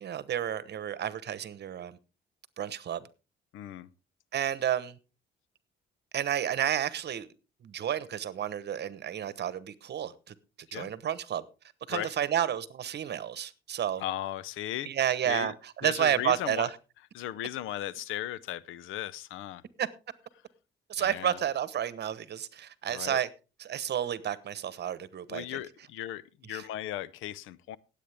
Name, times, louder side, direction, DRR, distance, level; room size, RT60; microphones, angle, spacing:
voice 1, 0.0-2.0 2.6-3.0 4.3-5.0 6.1-7.3 7.6-10.3 10.7-11.4 11.9-14.0 14.8-16.8 19.8-19.9 20.9-23.3 23.6-25.6 26.5-26.7, right 10 dB, 60° right, 1.1 m, -31 dB
voice 2, 3.5-3.9 10.7-10.9 11.9-12.1 14.0-14.9 15.2-15.5 15.8-16.7 17.1-19.6 21.0-21.4 22.9-23.2 25.3-27.8, left 12 dB, 90° left, 0.7 m, -37 dB
18.0 x 8.4 x 3.5 m
cardioid pair, 90°, 20 cm